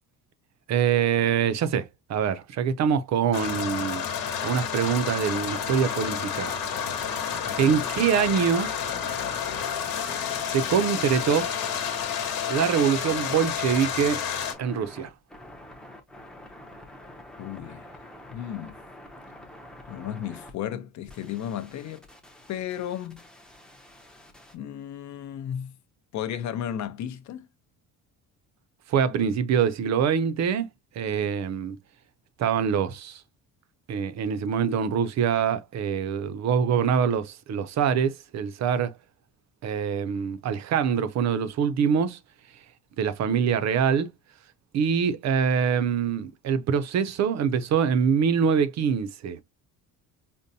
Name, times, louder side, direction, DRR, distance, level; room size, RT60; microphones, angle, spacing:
voice 1, 0.7-4.0 4.4-6.5 7.6-8.7 10.5-11.5 12.5-14.2 14.6-15.1 28.9-30.7 31.0-31.8 32.4-33.2 33.9-38.9 39.6-42.2 43.0-44.1 44.7-49.4, right 7 dB, 50° right, 0.5 m, -24 dB
sound 1, 3.3-14.5, left 8 dB, 70° left, 1.1 m, -30 dB
sound 2, 5.3-20.5 21.1-24.6, left 1 dB, ahead, 0.5 m, -47 dB
voice 2, 17.4-18.0 18.3-18.8 19.9-22.1 22.5-23.2 24.5-25.7 26.1-27.5, left 10 dB, 50° left, 0.6 m, -34 dB
5.2 x 2.1 x 2.7 m
cardioid pair, 160°, 36 cm